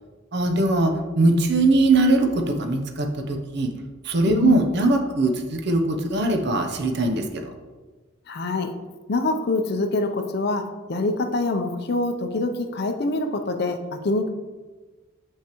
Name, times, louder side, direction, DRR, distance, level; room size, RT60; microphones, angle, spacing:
voice 1, 0.3-3.7 4.0-7.2, right 2 dB, 55° right, 4 dB, 0.7 m, -21 dB
voice 2, 4.3-4.6 8.3-8.7 9.1-14.3, left 2 dB, 50° left, 6 dB, 0.5 m, -25 dB
6.4 x 5.8 x 3.0 m, 1.3 s
head